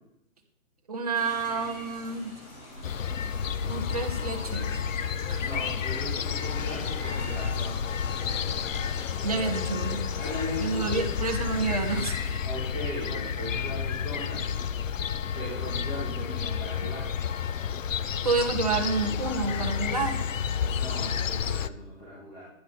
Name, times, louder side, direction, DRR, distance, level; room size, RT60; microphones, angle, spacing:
voice 1, 0.9-2.3 3.7-4.8 5.3-5.5 9.2-10.1 10.6-12.2 18.2-20.2, right 4 dB, 30° right, 2 dB, 1.1 m, -29 dB
sound 1, 1.1-12.4, left 1 dB, 90° left, 4.4 m, -44 dB
sound 2, 2.8-21.7, left 7 dB, 70° left, 0.6 m, -31 dB
voice 2, 5.4-7.8 9.5-11.0 12.4-14.4 15.3-17.1 20.7-22.4, left 1 dB, 30° left, -6 dB, 3.2 m, -38 dB
11.0 x 10.0 x 4.2 m, 0.81 s
hypercardioid pair, 175°, 41 cm